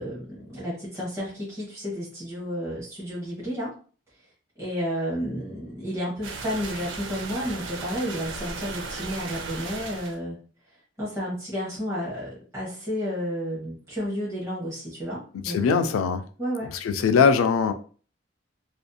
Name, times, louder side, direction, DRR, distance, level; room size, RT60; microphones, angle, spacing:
voice 1, 0.0-3.8 4.6-10.4 11.0-15.9 16.4-16.7, equal, 15° right, 0.8 m, -31 dB
sound 1, 6.2-10.2, right 4 dB, 65° right, 0.4 m, -36 dB
voice 2, 15.4-16.2 16.8-17.7, left 5 dB, 90° left, 0.3 m, -21 dB
2.6 x 2.4 x 2.2 m
head